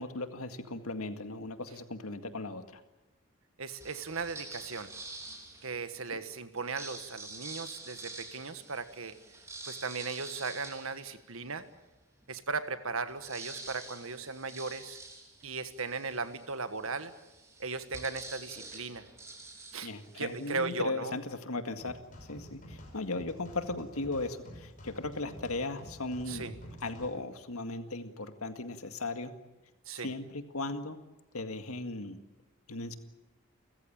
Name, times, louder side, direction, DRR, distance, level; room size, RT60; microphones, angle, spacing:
voice 1, 0.0-2.8 19.8-26.5 26.8-29.3 30.0-31.0 31.3-32.2 32.7-32.9, left 2 dB, 80° left, 7 dB, 2.0 m, -37 dB
voice 2, 3.6-4.9 5.6-9.2 9.6-11.6 12.3-15.0 15.4-17.1 17.6-19.0 19.7-21.1 26.3-26.5 29.9-30.1, right 4 dB, 70° right, 11 dB, 1.5 m, -37 dB
sound 1, 3.8-6.0 6.5-11.7 12.2-12.3 12.6-20.6, right 3 dB, 15° right, 3.4 m, -47 dB
sound 2, 21.8-27.1, equal, 35° left, 6.1 m, -49 dB
30.0 x 15.0 x 8.8 m, 1.1 s
head